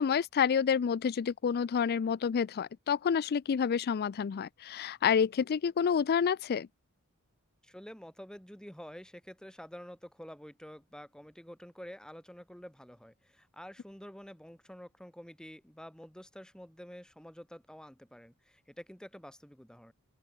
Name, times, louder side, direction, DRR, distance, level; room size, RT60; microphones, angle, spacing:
voice 1, 0.0-6.7, left 7 dB, 45° left, 0.4 m, -29 dB
voice 2, 7.6-19.9, equal, 5° left, 4.9 m, -49 dB
open air
head